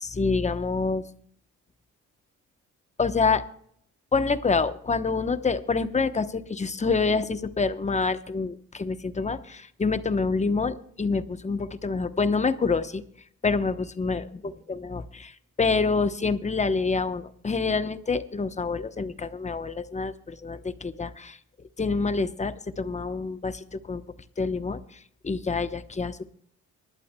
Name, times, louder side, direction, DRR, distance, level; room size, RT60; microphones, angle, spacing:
voice 1, 0.0-1.0 3.0-3.4 4.1-13.0 13.4-14.3 14.7-21.4 21.8-24.0 24.4-26.3, left 4 dB, 25° left, 11 dB, 1.0 m, -27 dB
24.0 x 12.0 x 2.3 m, 0.65 s
cardioid pair, 90°, 30 cm